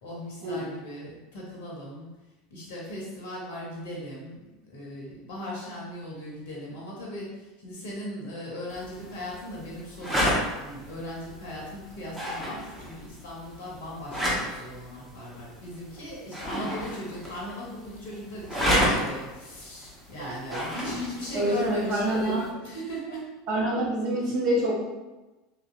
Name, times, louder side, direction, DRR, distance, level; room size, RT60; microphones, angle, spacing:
voice 1, 0.0-2.1 2.5-23.3, left 1 dB, 55° left, -3 dB, 0.7 m, -38 dB
sound 1, 8.7-22.5, equal, 5° right, 0.8 m, -32 dB
voice 2, 20.2-20.9 21.3-22.4 23.5-24.8, right 1 dB, 50° right, -4 dB, 0.6 m, -27 dB
2.9 x 2.5 x 2.4 m, 1.1 s
figure-of-eight pair, 75°, 0 cm